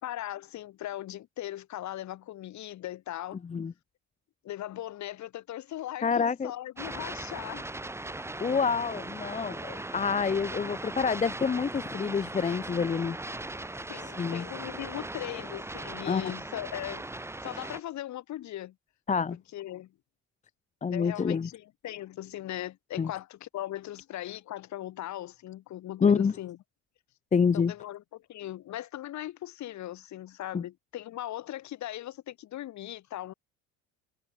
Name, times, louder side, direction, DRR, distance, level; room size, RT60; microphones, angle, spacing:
voice 1, 0.0-3.4 4.4-7.7 13.9-17.1 17.4-18.7 19.3-19.9 20.9-26.6 27.5-33.3, left 13 dB, 60° left, 6.2 m, -39 dB
voice 2, 6.0-6.5 8.4-13.2 14.2-14.4 16.1-16.2 19.1-19.4 20.8-21.5 23.0-23.1 26.0-26.3 27.3-27.7 30.5-30.6, left 6 dB, 20° left, 0.9 m, -27 dB
sound 1, 6.8-17.8, right 2 dB, 10° right, 1.8 m, -39 dB
supercardioid pair, 95°, 32 cm